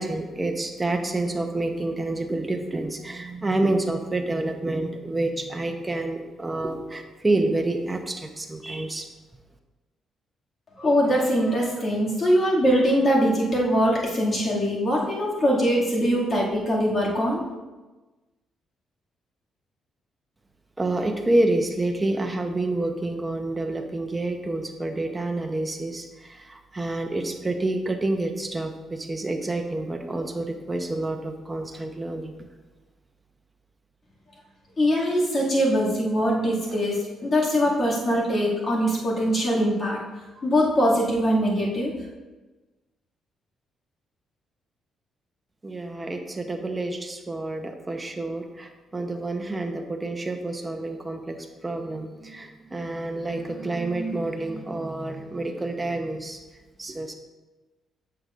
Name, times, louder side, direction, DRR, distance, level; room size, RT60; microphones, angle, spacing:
voice 1, 0.0-9.1 20.8-32.4 45.6-51.4 51.6-56.4 56.8-57.1, right 2 dB, 20° right, 4 dB, 0.8 m, -28 dB
voice 2, 10.8-17.4 34.8-40.0 40.4-41.9, equal, 40° left, -5 dB, 2.3 m, -22 dB
7.9 x 6.7 x 2.5 m, 1.2 s
cardioid pair, 90°, 0 cm